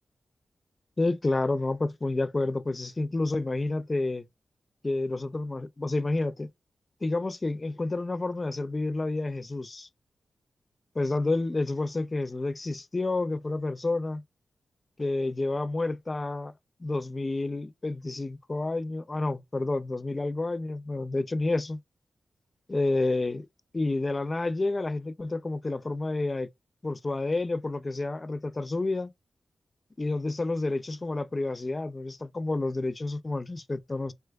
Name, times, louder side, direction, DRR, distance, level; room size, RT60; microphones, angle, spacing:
voice 1, 1.0-4.3 4.8-6.5 7.0-9.9 11.0-14.2 15.0-16.5 16.8-21.8 22.7-23.5 23.7-26.5 26.8-29.1 30.0-34.1, left 2 dB, 30° left, 0.3 m, -29 dB
3.3 x 3.1 x 2.3 m
wide cardioid pair, 105°, 0 cm